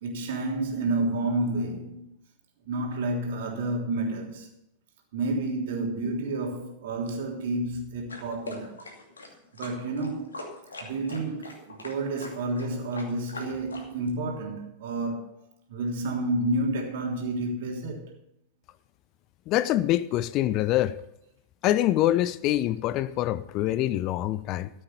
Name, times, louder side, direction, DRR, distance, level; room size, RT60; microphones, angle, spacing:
voice 1, 0.0-2.0 2.7-4.5 5.1-8.7 9.5-10.4 10.8-15.3 15.7-18.1, right 2 dB, 55° right, 3.2 m, -30 dB
sound 1, 8.1-14.1, left 2 dB, 75° left, 2.5 m, -42 dB
voice 2, 19.5-21.0 21.6-24.7, left 14 dB, 40° left, 0.5 m, -25 dB
14.0 x 7.8 x 6.9 m
figure-of-eight pair, 90°, 0 cm